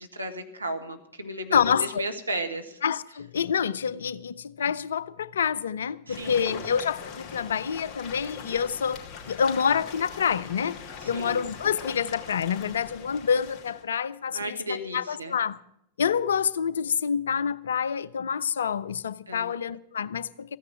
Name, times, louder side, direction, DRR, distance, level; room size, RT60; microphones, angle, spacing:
voice 1, 0.0-2.8 6.1-6.6 11.0-11.4 14.3-15.3 19.3-19.5, right 1 dB, 80° right, 1.4 m, -34 dB
voice 2, 1.5-2.0 2.8-10.8 11.0-15.6 16.0-20.6, left 7 dB, 65° left, 0.5 m, -27 dB
sound 1, 6.1-13.8, left 6 dB, 30° left, 2.5 m, -41 dB
14.5 x 9.7 x 7.3 m
figure-of-eight pair, 90°, 0 cm